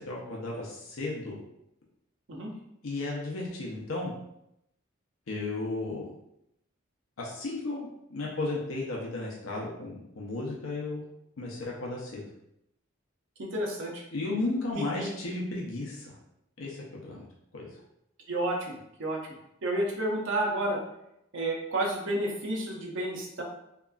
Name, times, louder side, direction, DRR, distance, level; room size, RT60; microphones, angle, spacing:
voice 1, 0.0-1.4 2.8-4.1 5.3-6.0 7.2-11.1 11.4-12.2 14.1-16.2 16.6-17.3 17.5-17.7, left 2 dB, 70° left, -3 dB, 0.5 m, -34 dB
voice 2, 13.4-14.0 14.7-15.1 18.3-19.2 19.6-20.8 21.3-23.4, right 1 dB, 65° right, 0 dB, 0.6 m, -31 dB
2.8 x 2.3 x 2.3 m, 0.81 s
head